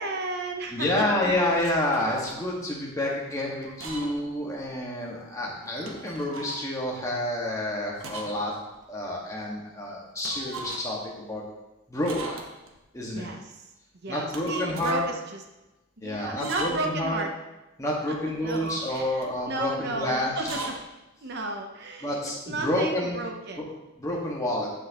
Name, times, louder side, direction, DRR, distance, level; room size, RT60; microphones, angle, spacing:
voice 1, 0.0-1.0 13.1-13.4 14.0-15.4 16.0-17.3 18.4-20.6 21.2-22.1 22.5-23.7, right 2 dB, 55° right, 3 dB, 0.8 m, -33 dB
voice 2, 0.7-8.6 8.9-11.4 11.9-12.4 12.9-13.3 14.1-15.0 16.0-17.2 17.8-20.6 22.0-23.2 23.6-23.7 24.0-24.7, left 1 dB, 15° left, -3 dB, 1.7 m, -29 dB
sound 1, 1.6-2.4 3.6-4.3 4.6-4.7 5.6-6.7 8.0-8.5 8.7-8.8 10.2-11.0 12.0-12.8 14.1-15.0 16.3-17.0 18.4-19.3 20.4-20.8, right 2 dB, 80° right, 1.3 m, -39 dB
14.5 x 5.9 x 3.0 m, 1.0 s
head